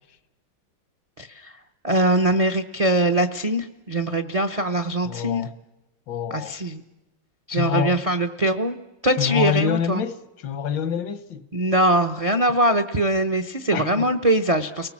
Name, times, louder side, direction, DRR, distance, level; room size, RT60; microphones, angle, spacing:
voice 1, 1.2-1.5 1.8-5.5 6.3-6.8 7.5-8.8 9.0-10.0 11.5-14.9, right 1 dB, 50° right, 0.4 m, -22 dB
voice 2, 5.0-5.5 6.1-6.6 7.5-8.0 9.2-11.5 13.7-14.1, left 8 dB, 75° left, 1.7 m, -26 dB
30.0 x 19.0 x 7.3 m
omnidirectional pair, 2.0 m